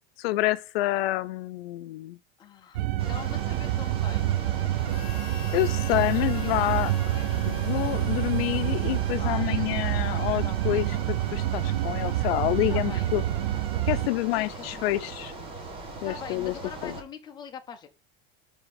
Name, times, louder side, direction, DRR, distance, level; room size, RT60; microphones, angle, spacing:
voice 1, 0.2-2.2 5.5-6.9 7.4-13.2 13.9-15.3 16.0-16.5 16.8-16.9, left 17 dB, 85° left, 0.5 m, -28 dB
voice 2, 2.4-5.2 5.9-7.5 9.2-9.7 10.4-11.0 12.7-13.2 14.3-15.3 16.0-17.9, left 7 dB, 15° left, 0.6 m, -44 dB
sound 1, 2.7-14.1, right 14 dB, 90° right, 0.5 m, -27 dB
sound 2, 3.0-17.0, right 3 dB, 20° right, 1.1 m, -41 dB
Harmonica, 4.8-9.7, left 10 dB, 55° left, 1.0 m, -44 dB
5.1 x 3.5 x 5.6 m
supercardioid pair, 155°, 29 cm